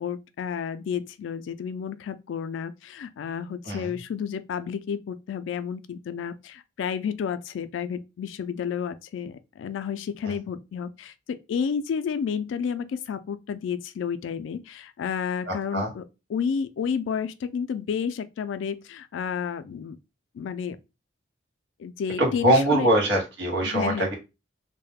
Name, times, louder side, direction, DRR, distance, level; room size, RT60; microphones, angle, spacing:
voice 1, 0.0-16.0 16.3-20.0 20.3-20.8 21.8-22.9 23.6-24.1, left 7 dB, 85° left, 0.3 m, -31 dB
voice 2, 15.4-15.9 22.2-24.1, right 1 dB, 65° right, 0.9 m, -23 dB
2.3 x 2.1 x 3.3 m
head